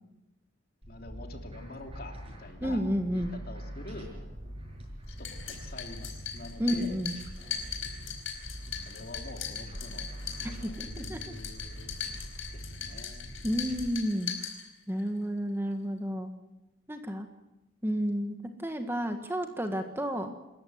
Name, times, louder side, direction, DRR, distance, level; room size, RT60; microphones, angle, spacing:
sound 1, 0.8-13.9, equal, 25° right, 6.3 m, -43 dB
voice 1, 0.9-2.8 3.1-4.1 5.1-7.0 8.9-11.9 12.5-13.4, left 2 dB, 45° left, 4 dB, 3.1 m, -46 dB
voice 2, 2.6-3.3 6.6-7.1 10.6-10.7 11.1-11.3 13.4-14.3 14.9-16.3 16.9-17.3 17.8-20.3, equal, 10° right, 6 dB, 1.5 m, -31 dB
sound 2, 5.1-15.1, left 8 dB, 70° left, 4.7 m, -40 dB
28.0 x 14.0 x 9.4 m, 0.96 s
head